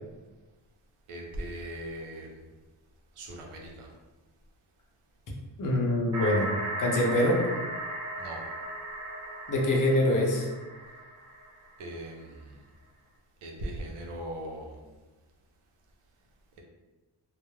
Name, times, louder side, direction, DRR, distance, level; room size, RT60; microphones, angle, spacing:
voice 1, 1.1-2.4 3.2-3.9 8.2-8.4 11.8-12.6 13.4-14.8, right 1 dB, 85° right, 0 dB, 0.7 m, -39 dB
voice 2, 5.6-6.5 6.8-7.4 9.5-10.5, left 1 dB, 40° left, 0 dB, 0.6 m, -24 dB
sound 1, 6.1-11.8, right 1 dB, 40° right, 0.6 m, -36 dB
2.3 x 2.0 x 3.1 m, 1.2 s
cardioid pair, 80°, 48 cm